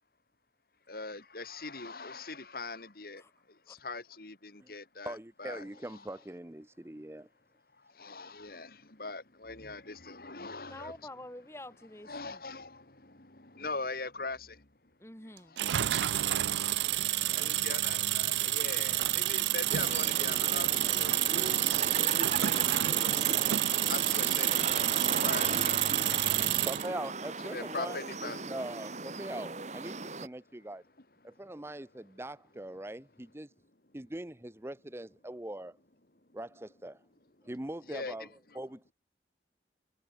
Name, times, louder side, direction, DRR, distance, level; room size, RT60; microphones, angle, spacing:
voice 1, 0.9-3.2 3.7-5.1 5.4-5.6 7.9-10.9 12.1-14.4 17.3-23.1 23.9-26.7 27.5-28.4 37.9-38.1, left 3 dB, 55° left, 2.3 m, -42 dB
voice 2, 5.0-7.3 26.7-30.8 31.2-33.5 33.9-35.8 36.3-37.0 37.4-38.9, right 1 dB, 15° right, 0.7 m, -42 dB
voice 3, 5.7-6.1 10.7-12.4 15.0-15.6 17.4-17.8, left 1 dB, 15° left, 3.8 m, -49 dB
sound 1, 15.6-26.9, right 14 dB, 80° right, 0.4 m, -29 dB
sound 2, 19.7-30.3, right 3 dB, 40° right, 2.2 m, -37 dB
head